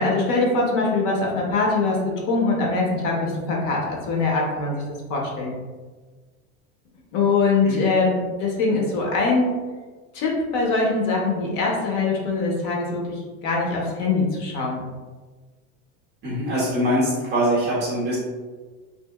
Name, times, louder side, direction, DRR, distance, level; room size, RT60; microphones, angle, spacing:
voice 1, 0.0-2.0 2.3-4.8 5.1-5.6 7.1-9.5 10.1-14.8, left 3 dB, 45° left, -1 dB, 0.6 m, -22 dB
voice 2, 16.2-18.2, equal, 25° right, -6 dB, 0.5 m, -23 dB
2.8 x 2.6 x 2.2 m, 1.4 s
supercardioid pair, 155°, 44 cm